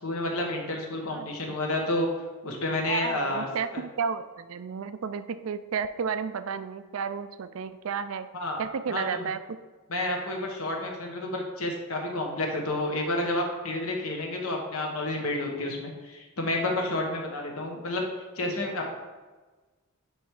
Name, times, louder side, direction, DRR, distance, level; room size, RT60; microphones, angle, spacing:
voice 1, 0.0-2.1 2.4-3.5 8.3-8.6 8.9-9.2 9.9-18.0 18.4-18.9, left 1 dB, 75° left, 1 dB, 1.4 m, -30 dB
voice 2, 1.1-1.6 2.9-8.3 8.6-9.4, right 6 dB, 70° right, 12 dB, 0.4 m, -32 dB
9.9 x 3.5 x 4.7 m, 1.3 s
head